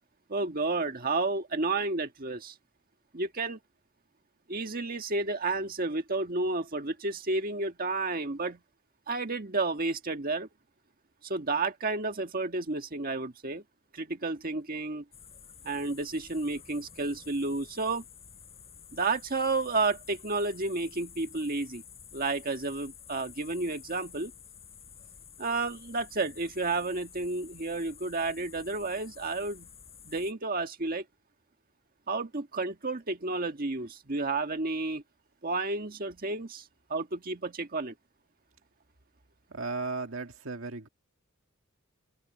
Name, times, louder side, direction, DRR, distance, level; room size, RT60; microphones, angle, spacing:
voice 1, 0.3-2.5 3.1-3.6 4.5-8.6 9.1-10.5 11.2-13.6 13.9-15.0 15.6-18.0 18.9-21.8 22.1-24.3 25.4-29.7 30.0-31.0 32.1-35.0 35.4-36.6 36.9-37.9, right 3 dB, 45° right, 1.6 m, -31 dB
sound 1, 15.1-30.3, left 7 dB, 30° left, 4.5 m, -51 dB
voice 2, 39.5-40.9, right 3 dB, 70° right, 1.9 m, -35 dB
head